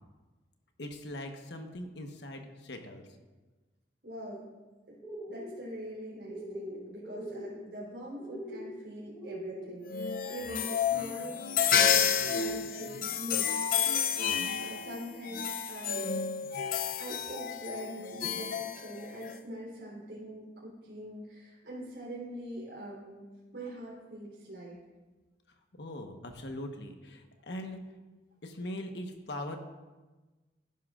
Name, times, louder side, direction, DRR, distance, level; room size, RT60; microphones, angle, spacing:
voice 1, 0.8-3.1 25.8-27.8 28.4-29.6, left 1 dB, 75° left, 4 dB, 1.2 m, -41 dB
voice 2, 4.0-4.5 4.9-5.0 5.3-13.8 14.1-16.2 17.0-23.2 23.5-24.8, right 1 dB, 75° right, -8 dB, 3.6 m, -43 dB
sound 1, 5.0-5.5 6.2-6.7 7.0-7.5 8.2-8.6 9.1-9.7, equal, 15° left, 3.1 m, -41 dB
sound 2, 9.9-19.4, left 8 dB, 50° left, 0.5 m, -30 dB
15.0 x 11.5 x 2.5 m, 1.2 s
head